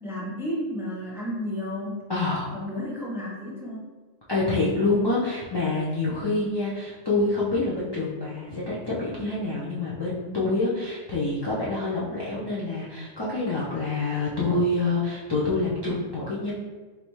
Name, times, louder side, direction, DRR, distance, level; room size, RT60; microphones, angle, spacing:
voice 1, 0.0-2.0 2.5-3.8, left 1 dB, ahead, -5 dB, 0.7 m, -32 dB
voice 2, 2.1-2.5 4.3-16.5, left 2 dB, 35° left, -7 dB, 0.4 m, -26 dB
3.9 x 3.3 x 3.0 m, 1.3 s
omnidirectional pair, 1.3 m